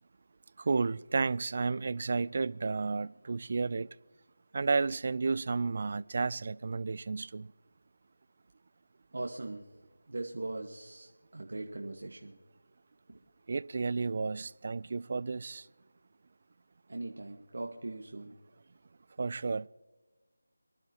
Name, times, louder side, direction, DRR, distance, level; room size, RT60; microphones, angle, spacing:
voice 1, 0.6-4.0 4.5-7.5 13.5-15.7 19.2-19.7, right 4 dB, 40° right, 0.3 m, -32 dB
voice 2, 9.1-9.7 10.1-12.4 13.1-13.2 16.9-18.4, right 2 dB, 60° right, 1.2 m, -40 dB
25.5 x 11.5 x 2.9 m
figure-of-eight pair, 170°, 0 cm